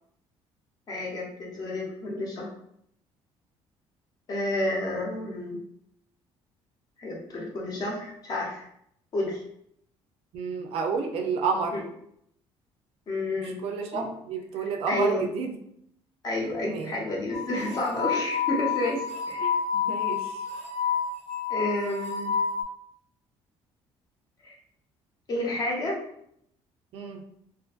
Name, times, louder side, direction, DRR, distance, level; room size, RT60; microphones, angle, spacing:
voice 1, 0.9-2.5 4.3-5.6 7.0-8.7 9.1-9.4 11.7-11.8 13.1-13.6 13.9-14.1 14.6-15.2 16.2-19.5 21.5-22.3 24.4-24.5 25.3-26.0, left 1 dB, 35° left, -2 dB, 0.7 m, -30 dB
voice 2, 10.3-11.8 13.4-15.5 16.7-16.9 19.4-20.4 26.9-27.2, right 5 dB, 65° right, 4 dB, 0.4 m, -30 dB
sound 1, 17.3-22.6, left 7 dB, 75° left, 0.6 m, -29 dB
2.5 x 2.5 x 2.4 m, 0.72 s
cardioid pair, 160°, 11 cm